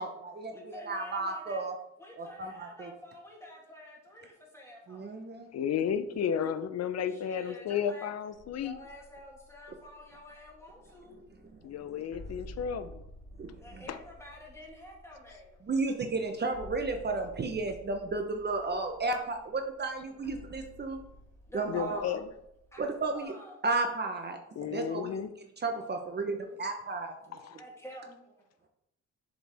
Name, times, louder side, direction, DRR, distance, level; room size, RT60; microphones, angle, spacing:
voice 1, 0.0-1.7 2.2-2.9 4.9-5.5 11.1-12.0 13.4-13.9 15.6-21.0 21.5-22.0 22.8-23.4 23.6-25.2 25.6-27.6, right 3 dB, 35° right, 4 dB, 0.9 m, -34 dB
voice 2, 0.5-1.6 2.0-5.1 7.1-8.1 8.6-11.2 13.6-15.6 21.5-22.2 22.7-22.8 23.1-23.5 26.2-26.6 27.5-28.2, equal, 10° left, -2 dB, 2.6 m, -49 dB
voice 3, 5.5-8.8 11.6-13.0 13.9-14.0 21.7-22.3 24.6-25.3 27.4-27.6, left 8 dB, 60° left, 12 dB, 0.7 m, -33 dB
sound 1, 8.3-23.2, equal, 90° left, 1.7 m, -52 dB
7.4 x 5.1 x 3.4 m, 0.79 s
cardioid pair, 90°, 30 cm